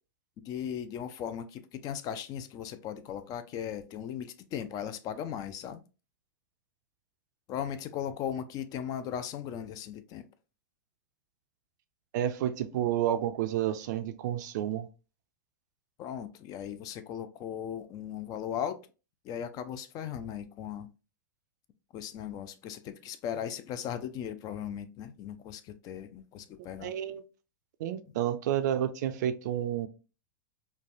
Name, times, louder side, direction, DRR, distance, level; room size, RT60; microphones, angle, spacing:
voice 1, 0.4-5.8 7.5-10.3 16.0-18.8 19.2-20.9 21.9-26.9, left 9 dB, 35° left, 0.4 m, -37 dB
voice 2, 12.1-14.9 26.8-27.2 27.8-29.9, right 11 dB, 60° right, 0.4 m, -30 dB
3.2 x 2.2 x 2.5 m
hypercardioid pair, 105°, 10 cm